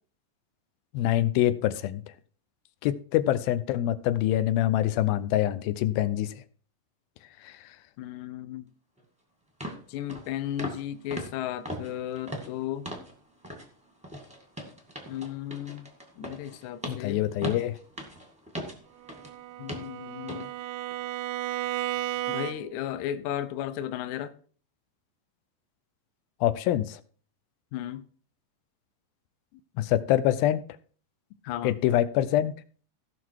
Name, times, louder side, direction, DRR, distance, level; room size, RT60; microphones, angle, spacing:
voice 1, 0.9-2.0 2.8-6.4 7.4-7.6 16.9-17.7 26.4-27.0 29.8-30.6 31.6-32.5, left 13 dB, 90° left, 2.5 m, -25 dB
voice 2, 8.0-8.7 9.9-12.9 15.1-15.9 16.2-17.2 19.6-20.5 22.3-24.3 27.7-28.0 31.4-31.8, left 11 dB, 75° left, 1.9 m, -34 dB
sound 1, 9.0-9.1 9.6-9.8 10.1-10.3 10.6-10.8 11.1-13.1 13.4-13.7 14.0-19.3 19.7-19.9 20.3-20.5 20.9-21.0, equal, 5° right, 0.7 m, -39 dB
Bowed string instrument, 19.0-22.9, right 14 dB, 85° right, 1.8 m, -34 dB
16.0 x 5.9 x 4.7 m
omnidirectional pair, 4.1 m